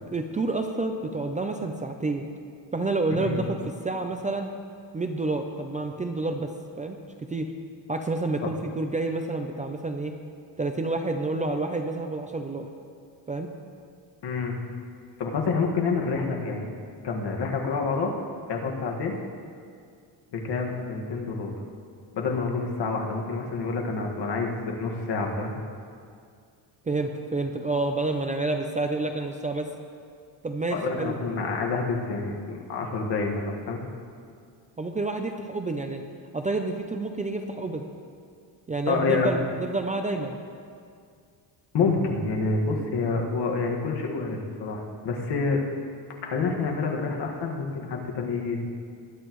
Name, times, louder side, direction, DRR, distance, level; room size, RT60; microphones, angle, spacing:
voice 1, 0.0-2.2 2.7-3.6 3.8-4.5 4.9-6.5 6.8-7.5 7.9-10.1 10.6-12.7 13.3-13.5 26.8-29.7 30.4-31.2 34.8-36.0 36.3-37.8 38.7-40.4, right 2 dB, 15° right, 4 dB, 0.5 m, -29 dB
voice 2, 14.2-14.6 15.2-16.7 17.0-18.1 18.5-19.1 20.3-21.6 22.1-25.5 30.7-33.8 38.9-39.3 41.7-45.6 46.2-48.6, left 4 dB, 65° left, 0 dB, 1.8 m, -28 dB
20.0 x 11.5 x 3.1 m, 2.2 s
cardioid pair, 160°, 45 cm